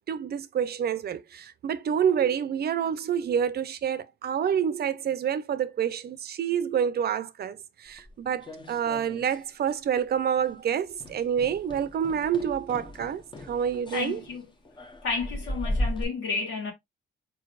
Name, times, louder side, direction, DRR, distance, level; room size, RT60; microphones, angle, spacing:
voice 1, 0.1-13.2 13.5-14.2, right 8 dB, 55° right, 0.6 m, -28 dB
sound 1, 8.0-9.4 9.7-10.1 10.4-10.6 11.0-16.0, left 1 dB, 25° left, 0.9 m, -36 dB
voice 2, 13.9-14.4 15.0-16.7, left 4 dB, 90° left, 2.4 m, -31 dB
4.6 x 4.2 x 2.4 m
cardioid pair, 90°, 20 cm